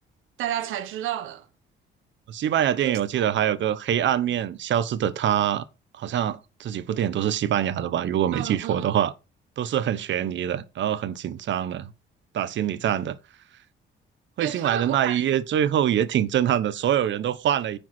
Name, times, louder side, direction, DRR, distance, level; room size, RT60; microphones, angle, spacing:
voice 1, 0.4-1.5 2.8-3.0 8.3-9.0 14.4-15.2, right 11 dB, 90° right, 1.4 m, -31 dB
voice 2, 2.3-5.6 6.0-9.1 9.6-11.9 12.3-13.2 14.4-17.8, right 10 dB, 70° right, 1.0 m, -24 dB
10.0 x 4.8 x 6.0 m
cardioid pair, 90°, 20 cm